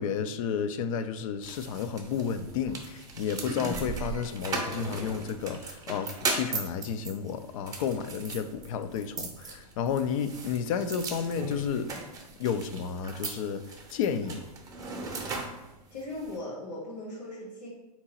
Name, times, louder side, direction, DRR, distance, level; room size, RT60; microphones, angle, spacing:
voice 1, 0.0-11.9 12.4-14.5, left 7 dB, 55° left, 0.4 m, -32 dB
sound 1, 1.4-16.4, right 3 dB, 15° right, 0.7 m, -38 dB
voice 2, 15.9-17.7, left 1 dB, 70° left, 1.4 m, -38 dB
3.7 x 2.9 x 4.3 m
hypercardioid pair, 120°, 21 cm